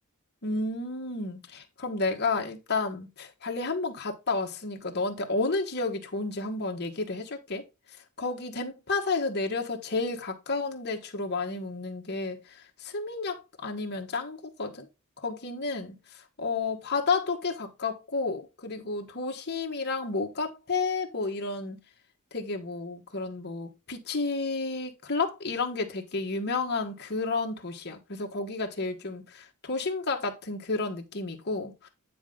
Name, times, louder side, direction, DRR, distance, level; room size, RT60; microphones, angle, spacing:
voice 1, 0.4-7.6 8.2-12.4 12.8-14.9 15.2-15.9 16.4-21.8 22.3-31.9, left 3 dB, 50° left, 1.3 m, -31 dB
9.3 x 4.3 x 3.8 m
head